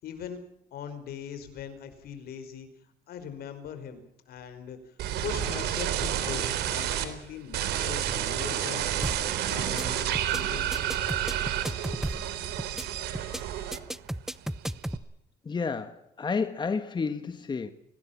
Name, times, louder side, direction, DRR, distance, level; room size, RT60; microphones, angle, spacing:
voice 1, 0.0-0.4 0.7-2.7 3.1-4.9 5.2-8.9 9.5-10.8, left 7 dB, 65° left, 10 dB, 5.1 m, -40 dB
sound 1, 5.0-7.1 7.5-14.1 14.4-15.0, right 11 dB, 80° right, 3.7 m, -30 dB
sound 2, 9.0-9.3 9.6-9.8 10.1-10.4 10.7-12.3 12.6-12.8 13.1-13.4 13.7-15.0, equal, ahead, 0.8 m, -34 dB
voice 2, 15.4-17.7, left 5 dB, 25° left, 9 dB, 1.5 m, -31 dB
24.5 x 18.5 x 7.3 m, 0.74 s
cardioid pair, 110°, 17 cm